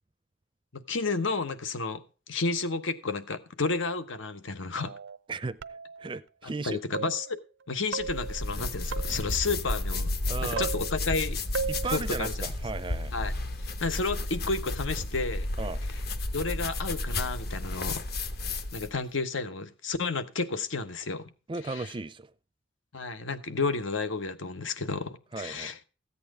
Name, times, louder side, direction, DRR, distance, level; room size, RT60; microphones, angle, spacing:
voice 1, 0.7-2.0 2.3-4.9 6.4-7.4 7.7-10.1 10.4-11.4 11.9-12.3 13.1-13.3 13.8-15.5 16.3-18.0 18.7-21.3 21.7-21.9 22.9-25.8, left 3 dB, 85° left, 1.0 m, -31 dB
sound 1, 4.8-5.2 5.6-6.2 6.9-7.4 7.9-9.4 10.6-11.3 11.5-11.9, right 5 dB, 75° right, 0.5 m, -36 dB
voice 2, 6.0-6.8 10.3-10.7 11.7-13.1 15.6-15.8 21.5-22.3 25.3-25.7, right 3 dB, 25° right, 0.5 m, -35 dB
sound 2, 8.0-19.0, left 2 dB, 55° left, 1.0 m, -32 dB
14.5 x 8.6 x 3.6 m
head